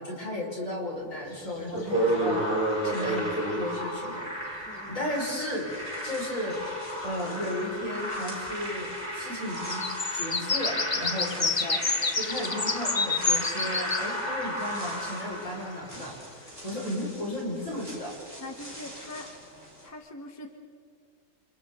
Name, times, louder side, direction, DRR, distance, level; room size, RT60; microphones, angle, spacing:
voice 1, 0.0-2.6 2.8-6.6 7.0-9.9 10.1-11.8 12.1-18.1, left 1 dB, 60° left, -3 dB, 5.9 m, -34 dB
sound 1, 1.2-1.3 1.7-4.8 5.1-19.9, right 1 dB, 10° right, 5.0 m, -36 dB
sound 2, 1.4-1.5 5.9-6.0 6.4-7.0 9.5-14.5 14.9-15.0, left 4 dB, 25° left, 0.6 m, -29 dB
sound 3, 1.9-16.2, equal, 35° right, 5.4 m, -36 dB
voice 2, 4.7-5.0 18.4-19.3 19.8-20.5, left 1 dB, 10° left, 3 dB, 1.5 m, -42 dB
29.5 x 29.0 x 3.9 m, 2.2 s
omnidirectional pair, 1.6 m